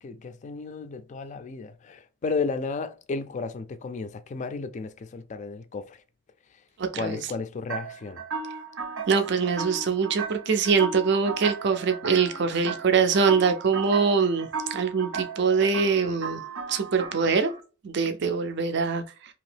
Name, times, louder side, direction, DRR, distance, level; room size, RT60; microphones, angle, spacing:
voice 1, 0.0-6.0 7.0-8.2, left 4 dB, 35° left, 0.3 m, -33 dB
voice 2, 6.8-7.2 9.1-16.4 16.7-17.5 17.8-19.0, right 5 dB, 60° right, 0.5 m, -23 dB
sound 1, 7.7-17.6, right 5 dB, 90° right, 0.7 m, -36 dB
2.9 x 2.7 x 3.3 m
head